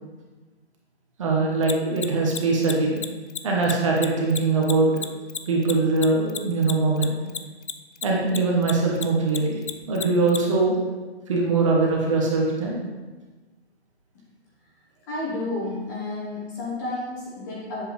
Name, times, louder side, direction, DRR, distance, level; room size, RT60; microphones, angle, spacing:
voice 1, 1.2-3.0 3.4-4.9 5.5-7.2 8.0-9.6 9.9-10.7 11.3-12.8, right 3 dB, 30° right, -2 dB, 1.2 m, -22 dB
Mechanisms, 1.6-8.4 8.6-10.4, left 8 dB, 90° left, 0.6 m, -31 dB
voice 2, 15.1-17.9, left 2 dB, 15° left, -5 dB, 1.1 m, -31 dB
7.8 x 7.4 x 3.1 m, 1.3 s
hypercardioid pair, 155°, 34 cm